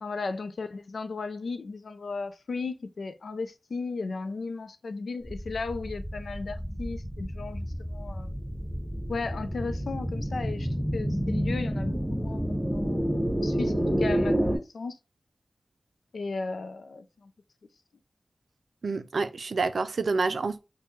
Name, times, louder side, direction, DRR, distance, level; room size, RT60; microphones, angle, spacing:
voice 1, 0.0-8.3 9.1-13.0 13.4-15.0 16.1-17.3, left 4 dB, 90° left, 0.4 m, -35 dB
sound 1, 5.2-14.6, equal, 5° left, 2.6 m, -29 dB
voice 2, 18.8-20.6, right 4 dB, 85° right, 0.4 m, -28 dB
5.7 x 2.2 x 3.0 m
wide cardioid pair, 80°, 0 cm